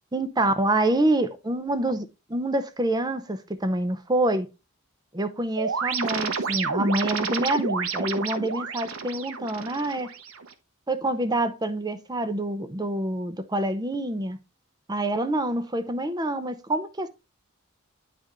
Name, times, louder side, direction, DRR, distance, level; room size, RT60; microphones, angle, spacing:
voice 1, 0.1-4.5 5.1-10.1 10.9-14.4 14.9-17.1, right 1 dB, 20° right, 0.6 m, -26 dB
sound 1, 5.6-10.5, right 5 dB, 65° right, 0.8 m, -30 dB
9.7 x 3.4 x 3.6 m
head